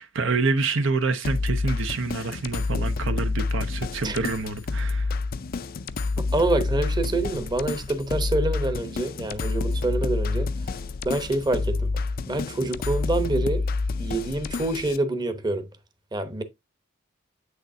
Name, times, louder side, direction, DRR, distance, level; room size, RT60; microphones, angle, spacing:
voice 1, 0.0-5.2, right 4 dB, 65° right, 0.7 m, -27 dB
sound 1, 1.2-15.0, left 3 dB, 45° left, 0.4 m, -28 dB
voice 2, 6.2-10.7 11.0-12.0 12.3-13.7 14.0-15.7 16.1-16.4, right 2 dB, 20° right, 0.9 m, -26 dB
8.0 x 6.5 x 2.7 m
head